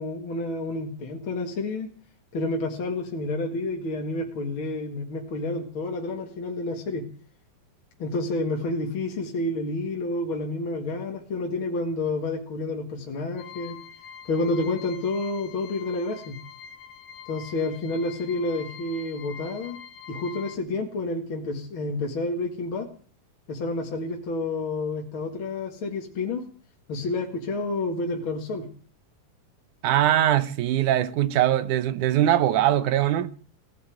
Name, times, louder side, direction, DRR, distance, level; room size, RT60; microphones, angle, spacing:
voice 1, 0.0-1.9 2.3-7.1 8.0-13.8 14.3-16.4 17.3-19.8 20.1-22.9 23.5-26.4 26.9-28.7, left 2 dB, 45° left, 2.4 m, -29 dB
sound 1, 13.4-20.6, left 8 dB, 60° left, 2.6 m, -44 dB
voice 2, 29.8-33.3, right 12 dB, 70° right, 2.3 m, -21 dB
17.5 x 8.1 x 9.3 m
omnidirectional pair, 3.8 m